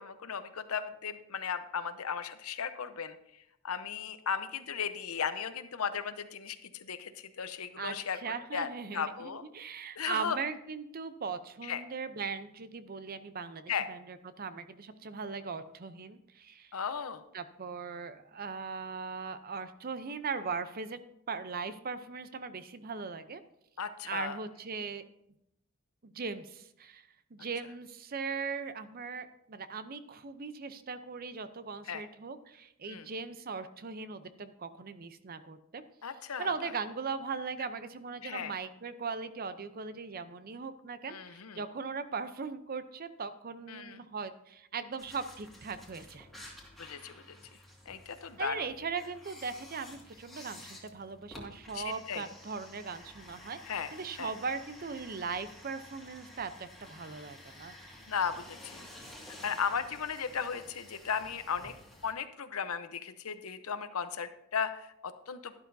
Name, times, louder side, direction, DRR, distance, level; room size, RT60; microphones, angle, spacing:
voice 1, 0.0-3.1 3.6-8.2 8.5-9.4 10.0-10.4 11.6-11.8 13.7-13.9 16.7-17.2 23.8-24.4 31.9-32.0 32.9-33.1 36.0-36.5 38.2-38.5 41.1-41.6 43.7-44.0 46.8-47.3 47.9-48.7 51.7-52.2 53.7-53.9 54.2-54.3 58.1-58.9 59.3-61.7 62.0-65.6, left 6 dB, 85° left, 11 dB, 0.8 m, -36 dB
voice 2, 7.8-16.8 17.3-21.0 21.3-23.4 24.0-25.0 26.0-35.8 36.4-46.3 48.4-53.6 53.9-57.7, right 5 dB, 45° right, 12 dB, 0.6 m, -39 dB
sound 1, 45.0-62.1, left 1 dB, ahead, 2.0 m, -52 dB
12.0 x 11.5 x 2.7 m, 0.79 s
head